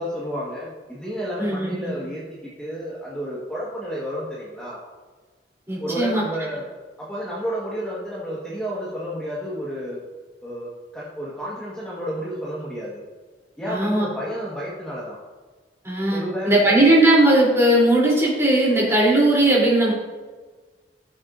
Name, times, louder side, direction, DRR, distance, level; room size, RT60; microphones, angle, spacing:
voice 1, 0.0-4.8 5.8-6.7 7.0-10.0 10.4-13.0 13.6-15.2 16.1-16.8, equal, 5° left, -7 dB, 1.6 m, -31 dB
voice 2, 1.4-1.9 5.7-6.2 13.7-14.1 15.8-19.9, right 1 dB, 15° right, -5 dB, 3.4 m, -18 dB
16.5 x 7.2 x 2.7 m, 1.3 s
head